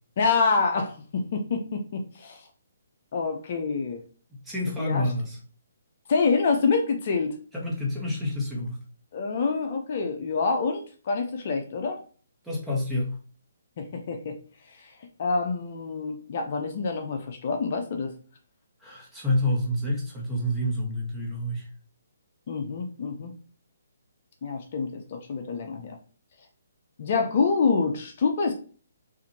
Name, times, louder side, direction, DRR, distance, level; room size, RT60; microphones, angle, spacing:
voice 1, 0.2-2.4 3.1-4.0 4.8-5.0 6.1-7.4 9.1-12.0 13.8-14.4 14.8-14.9 15.2-18.1 22.5-23.3 24.4-26.0 27.0-28.5, left 4 dB, 50° left, 4 dB, 0.6 m, -26 dB
voice 2, 4.3-5.4 7.5-8.8 12.4-13.1 18.8-21.7, left 1 dB, 5° right, -4 dB, 1.2 m, -28 dB
4.8 x 2.6 x 2.8 m, 0.40 s
hypercardioid pair, 150°, 0 cm